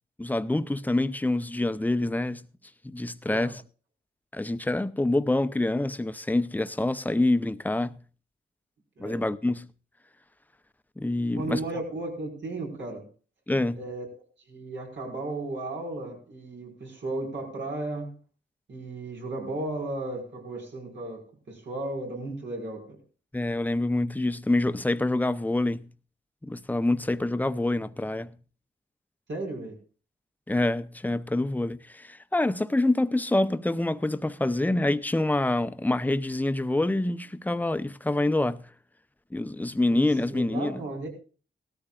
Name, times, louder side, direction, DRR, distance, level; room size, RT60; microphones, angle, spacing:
voice 1, 0.2-2.5 2.8-3.6 4.3-8.0 9.0-9.7 11.0-11.6 13.5-13.8 23.3-25.9 26.4-28.3 30.5-38.7 39.3-40.8, left 2 dB, 10° left, 0.7 m, -26 dB
voice 2, 3.3-3.6 9.0-9.2 11.4-13.1 13.7-14.1 14.5-18.2 18.7-23.0 29.3-29.8 39.9-41.1, right 2 dB, 80° right, 5.2 m, -35 dB
18.5 x 13.5 x 2.4 m
wide cardioid pair, 85°, 19 cm